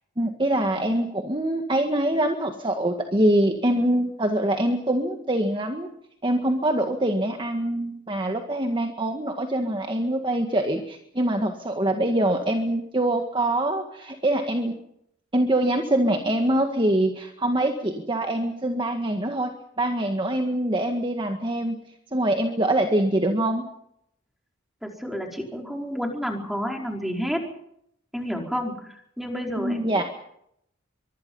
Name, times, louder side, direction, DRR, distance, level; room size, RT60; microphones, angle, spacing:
voice 1, 0.2-5.9 6.2-14.8 15.3-19.5 19.8-21.8 22.1-23.6 29.6-30.0, right 1 dB, 25° right, 4 dB, 1.8 m, -24 dB
voice 2, 24.8-27.4 28.1-30.0, equal, ahead, 2 dB, 4.7 m, -30 dB
24.5 x 24.0 x 5.6 m, 0.74 s
head